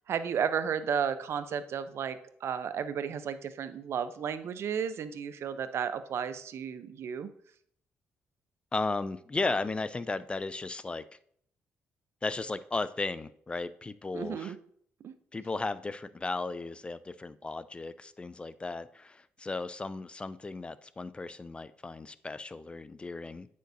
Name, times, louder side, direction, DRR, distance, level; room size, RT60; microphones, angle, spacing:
voice 1, 0.1-7.3 14.1-14.6 15.0-15.1, right 7 dB, 60° right, 12 dB, 0.6 m, -33 dB
voice 2, 8.7-11.1 12.2-14.6 15.3-23.5, left 3 dB, 20° left, 15 dB, 0.3 m, -35 dB
9.3 x 6.4 x 2.7 m, 0.65 s
cardioid pair, 95°, 5 cm